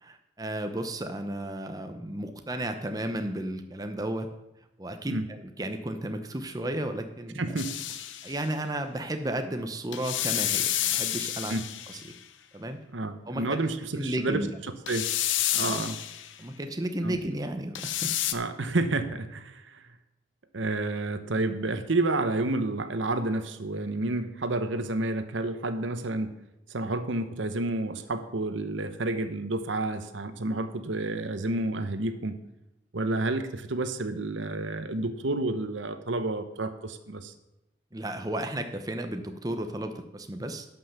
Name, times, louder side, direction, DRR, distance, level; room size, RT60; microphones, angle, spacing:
voice 1, 0.0-4.3 4.8-7.6 8.2-11.5 11.9-12.0 12.5-12.8 13.3-13.6 13.9-14.5 15.7-15.8 16.4-18.1 37.9-40.7, right 1 dB, 20° right, 6 dB, 0.7 m, -33 dB
voice 2, 7.4-7.8 11.5-11.6 12.9-14.5 14.9-15.1 15.5-16.0 17.0-17.2 18.3-19.8 20.5-26.3 26.7-32.4 32.9-37.3, right 2 dB, 85° right, 10 dB, 0.9 m, -30 dB
sound 1, 7.6-8.4 9.9-12.2 14.9-16.3 17.7-18.3, left 12 dB, 85° left, 0.7 m, -30 dB
11.5 x 5.5 x 6.7 m, 0.91 s
head